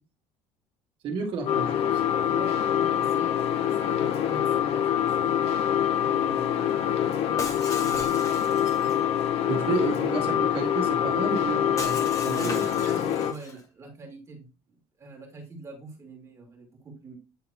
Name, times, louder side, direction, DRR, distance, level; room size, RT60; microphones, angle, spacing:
voice 1, 1.0-2.0 9.5-12.6, right 4 dB, 50° right, 1 dB, 1.7 m, -31 dB
sound 1, 1.4-13.3, left 10 dB, 60° left, 0.7 m, -25 dB
voice 2, 2.3-5.5 6.1-6.8 7.8-8.1 12.4-17.2, right 2 dB, 25° right, 0 dB, 2.4 m, -44 dB
Shatter, 7.4-9.0 11.8-13.6, left 3 dB, 25° left, 1.3 m, -38 dB
9.3 x 3.8 x 2.9 m, 0.31 s
cardioid pair, 145°, 12 cm